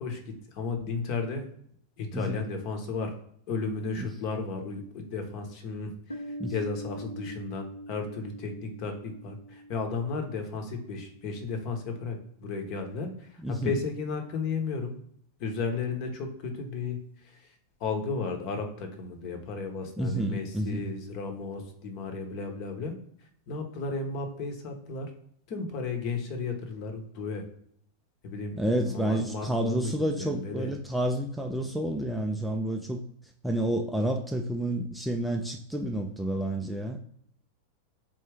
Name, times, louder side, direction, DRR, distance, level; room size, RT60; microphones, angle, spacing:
voice 1, 0.0-1.4 2.0-3.2 3.5-14.9 15.4-22.9 23.5-25.1 25.5-27.4 28.2-30.7, left 4 dB, 45° left, 5 dB, 0.9 m, -34 dB
Piano, 6.1-11.5, equal, 80° left, 0.7 m, -43 dB
voice 2, 13.4-13.8 20.0-20.8 28.6-33.0 33.4-37.0, right 1 dB, ahead, 1 dB, 0.4 m, -29 dB
3.5 x 2.6 x 3.3 m, 0.68 s
figure-of-eight pair, 90°, 0 cm